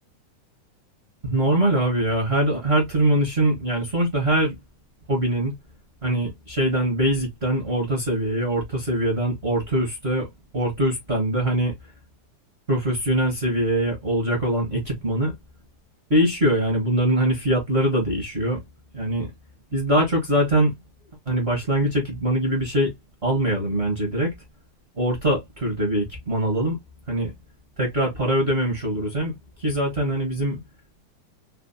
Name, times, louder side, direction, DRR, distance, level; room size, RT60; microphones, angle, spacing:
voice 1, 1.2-4.5 5.1-5.6 6.0-11.7 12.7-15.3 16.1-18.6 18.9-19.3 19.7-20.8 21.3-22.9 23.2-24.3 25.0-26.8 27.1-27.3 27.8-30.6, right 1 dB, 55° right, 0.6 m, -23 dB
5.4 x 2.2 x 2.6 m
omnidirectional pair, 3.6 m